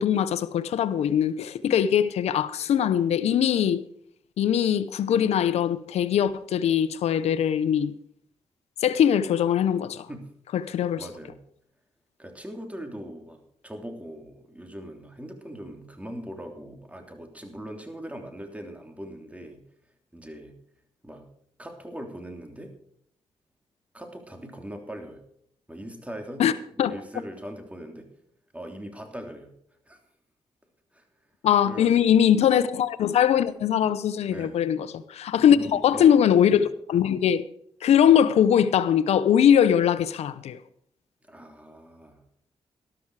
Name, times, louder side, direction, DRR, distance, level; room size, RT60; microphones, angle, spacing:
voice 1, 0.0-3.8 4.4-7.9 8.8-10.1 10.5-11.0 26.4-26.5 26.8-26.9 31.4-37.4 37.8-40.6, left 9 dB, 85° left, 0.8 m, -21 dB
voice 2, 10.6-11.4 12.2-19.7 20.1-20.6 21.0-21.3 21.6-22.8 23.9-25.2 25.7-26.5 26.8-28.1 28.5-29.5 29.9-30.0 30.9-31.0 31.6-32.3 34.3-34.6 35.3-36.6 41.3-42.2, equal, 10° right, 3.2 m, -41 dB
13.0 x 12.0 x 4.8 m
cardioid pair, 60°, 11 cm